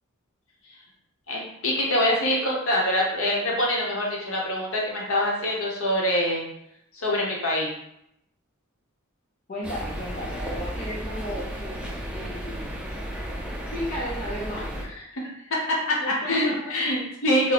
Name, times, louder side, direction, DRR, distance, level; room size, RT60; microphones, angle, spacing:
voice 1, 1.3-6.4 6.9-7.7 15.2-16.0 16.3-17.5, left 1 dB, 65° left, -3 dB, 0.9 m, -25 dB
voice 2, 9.5-13.0 13.7-14.8 15.2-15.3 16.0-16.8, equal, 40° left, -5 dB, 0.8 m, -35 dB
sound 1, 9.6-14.8, equal, 5° right, 0.4 m, -33 dB
3.1 x 2.2 x 4.0 m, 0.77 s
head